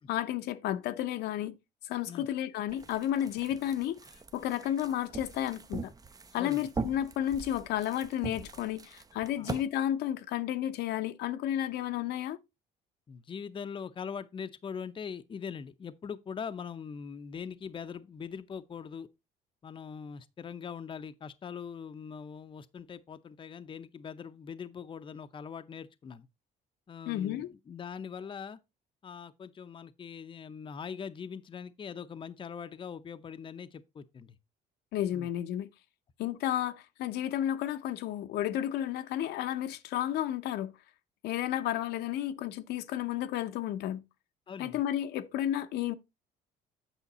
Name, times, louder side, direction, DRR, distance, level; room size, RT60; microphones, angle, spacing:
voice 1, 0.1-1.6 1.8-4.0 4.3-5.9 6.3-12.4 27.1-27.5 34.9-35.7 36.2-40.7 41.2-44.0 44.6-45.9, left 11 dB, 75° left, 0.8 m, -32 dB
sound 1, 2.7-9.6, right 4 dB, 20° right, 0.6 m, -42 dB
voice 2, 6.4-6.7 9.4-9.5 13.1-19.1 19.6-26.3 26.9-28.6 29.0-34.4 35.1-35.3 44.5-44.8, left 6 dB, 30° left, 0.6 m, -42 dB
8.3 x 5.7 x 4.1 m
cardioid pair, 110°, 17 cm